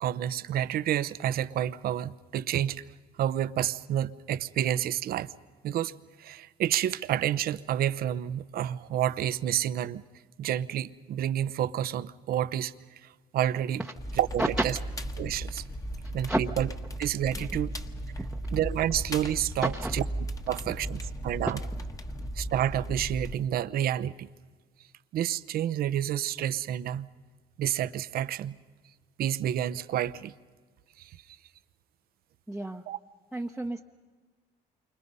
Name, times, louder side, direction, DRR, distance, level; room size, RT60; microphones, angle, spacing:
voice 1, 0.0-2.8 3.2-5.3 5.6-5.9 6.2-10.0 10.4-12.7 13.3-13.8 14.2-14.4 15.2-15.6 16.1-16.3 16.6-16.7 17.0-17.7 18.5-19.7 20.5-21.5 22.4-24.3 25.1-27.1 27.6-28.5 29.2-30.3 31.0-31.1 32.9-33.0, right 11 dB, 60° right, 0.8 m, -29 dB
Crackle, 14.0-23.3, right 1 dB, 20° left, 1.4 m, -36 dB
voice 2, 16.0-16.4 17.3-17.6 18.2-18.3 19.6-20.0 20.5-20.6 32.5-32.8 33.3-33.8, right 1 dB, 5° right, 1.0 m, -32 dB
28.5 x 25.0 x 5.5 m
cardioid pair, 110°, 17 cm